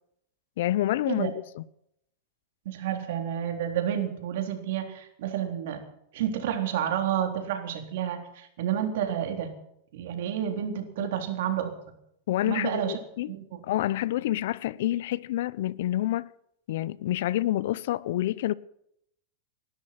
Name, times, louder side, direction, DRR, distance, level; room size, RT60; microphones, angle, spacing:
voice 1, 0.6-1.6 11.0-11.1 12.3-13.3 13.6-16.3 16.7-18.5, left 14 dB, 70° left, 0.8 m, -28 dB
voice 2, 2.7-5.8 6.1-9.5 9.9-11.7 12.5-13.0 13.3-13.6, right 10 dB, 70° right, 3.7 m, -30 dB
19.5 x 12.5 x 5.9 m
supercardioid pair, 135°, 0 cm